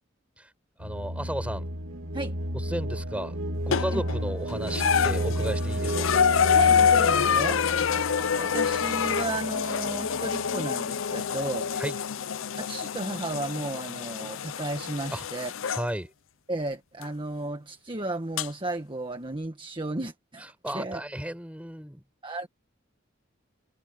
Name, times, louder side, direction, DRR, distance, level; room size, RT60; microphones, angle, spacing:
voice 1, 0.8-1.7 2.7-6.1 11.8-12.0 15.1-15.3 15.7-16.1 20.6-22.0, equal, 5° right, 6.4 m, -34 dB
sound 1, 0.8-10.6, right 1 dB, 75° right, 3.4 m, -32 dB
sound 2, 3.7-4.2 4.7-15.9 17.0-17.1 18.4-18.5, left 7 dB, 70° left, 0.6 m, -26 dB
voice 2, 6.5-7.7 8.3-11.7 12.6-15.5 16.5-21.0 22.2-22.5, right 2 dB, 25° right, 1.4 m, -34 dB
head